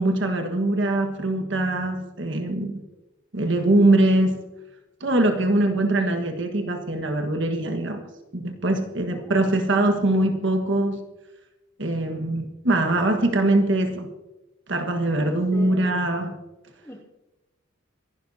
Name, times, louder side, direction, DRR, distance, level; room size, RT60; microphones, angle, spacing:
voice 1, 0.0-2.8 3.3-4.4 5.0-8.0 8.3-11.0 11.8-14.1 14.7-16.3, right 2 dB, 60° right, 5 dB, 1.5 m, -22 dB
voice 2, 15.2-16.0 16.8-17.0, right 1 dB, 15° left, -1 dB, 2.1 m, -40 dB
26.0 x 11.5 x 2.8 m, 1.0 s
head